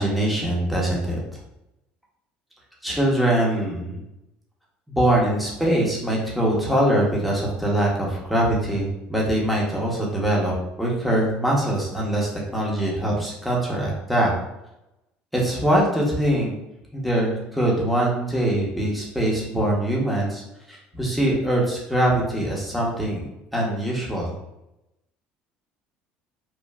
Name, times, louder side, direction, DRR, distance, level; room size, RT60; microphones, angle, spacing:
voice 1, 0.0-1.4 2.8-4.0 4.9-14.3 15.3-16.5 16.9-20.4 20.7-23.2 23.5-24.3, right 1 dB, ahead, -4 dB, 0.8 m, -23 dB
3.1 x 2.3 x 2.3 m, 0.88 s
supercardioid pair, 95°, 4 cm